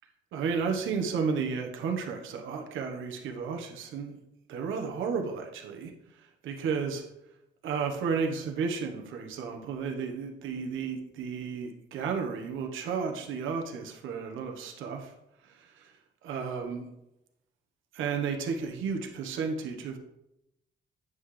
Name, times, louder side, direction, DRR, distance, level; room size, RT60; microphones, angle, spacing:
voice 1, 0.3-4.2 4.5-5.9 6.2-7.0 7.6-15.1 15.4-15.9 16.2-16.9 17.9-20.0, right 5 dB, 85° right, 3 dB, 1.3 m, -33 dB
9.3 x 5.9 x 3.3 m, 0.86 s
cardioid pair, 90°, 20 cm